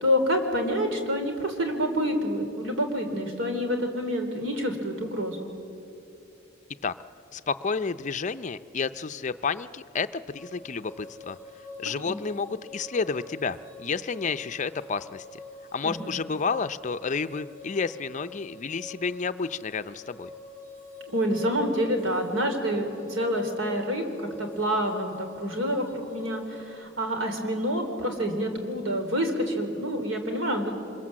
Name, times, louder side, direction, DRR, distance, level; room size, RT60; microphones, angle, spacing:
voice 1, 0.0-5.5 12.0-12.2 15.8-16.1 21.1-30.7, equal, 75° right, 4 dB, 3.3 m, -27 dB
voice 2, 7.3-11.4 11.8-15.2 15.7-20.3, left 5 dB, 35° left, 12 dB, 0.5 m, -30 dB
sound 1, 10.3-26.7, left 2 dB, 10° right, 7.6 m, -46 dB
26.0 x 22.5 x 7.5 m, 2.7 s
head